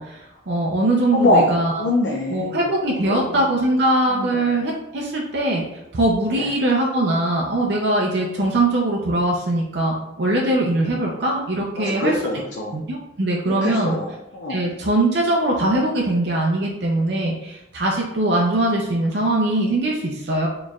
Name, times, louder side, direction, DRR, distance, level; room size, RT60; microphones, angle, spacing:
voice 1, 0.0-1.8 2.3-5.6 5.9-12.2 12.7-14.0 14.5-20.5, right 1 dB, 60° right, -2 dB, 0.5 m, -21 dB
voice 2, 1.1-1.5 1.8-2.6 3.0-3.4 4.2-4.3 6.3-6.5 11.8-12.7 13.5-14.6, left 1 dB, 70° left, -1 dB, 0.5 m, -23 dB
4.3 x 3.1 x 2.3 m, 0.87 s
head